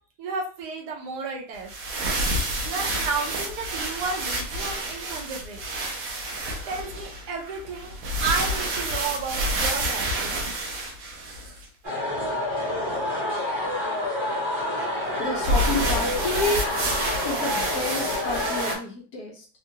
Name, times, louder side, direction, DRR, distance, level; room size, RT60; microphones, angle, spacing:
voice 1, 0.2-1.8 2.6-5.6 6.7-7.9 8.2-10.4, right 4 dB, 70° right, 0 dB, 1.2 m, -32 dB
sound 1, 1.5-11.6 15.4-18.7, right 1 dB, 90° right, 1.4 m, -29 dB
sound 2, 11.8-18.8, left 1 dB, 40° right, 0.9 m, -28 dB
voice 2, 15.2-16.7 17.2-19.5, left 2 dB, 65° left, 1 dB, 1.0 m, -30 dB
3.6 x 2.1 x 2.7 m, 0.39 s
omnidirectional pair, 2.0 m